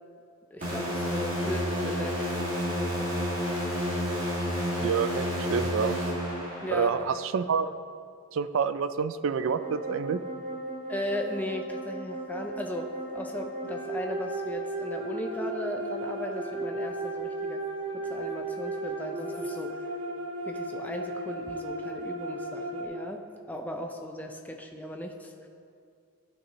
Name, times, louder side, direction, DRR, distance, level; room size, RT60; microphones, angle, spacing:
voice 1, 0.5-3.1 6.6-6.9 10.9-17.6 17.9-19.8 20.4-23.2 23.5-25.5, equal, 10° left, 3 dB, 0.4 m, -37 dB
sound 1, 0.6-7.1, equal, 40° right, 2.2 m, -30 dB
voice 2, 4.8-5.9 6.7-7.8 8.3-10.2, right 6 dB, 70° right, 13 dB, 0.4 m, -28 dB
sound 2, 9.4-22.8, right 2 dB, 85° right, 1.7 m, -35 dB
13.5 x 6.3 x 3.0 m, 2.3 s
head